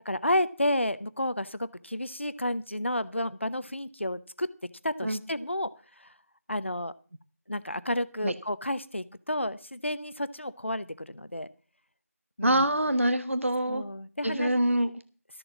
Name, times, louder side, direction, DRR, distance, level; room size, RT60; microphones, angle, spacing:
voice 1, 0.0-4.5 4.8-5.7 6.5-6.9 7.5-11.5 12.4-12.6 13.7-14.5, left 1 dB, 50° left, 15 dB, 0.8 m, -31 dB
voice 2, 12.4-13.8 14.2-14.9, right 1 dB, 55° right, 11 dB, 0.9 m, -25 dB
13.0 x 7.1 x 7.0 m, 0.38 s
figure-of-eight pair, 180°, 8 cm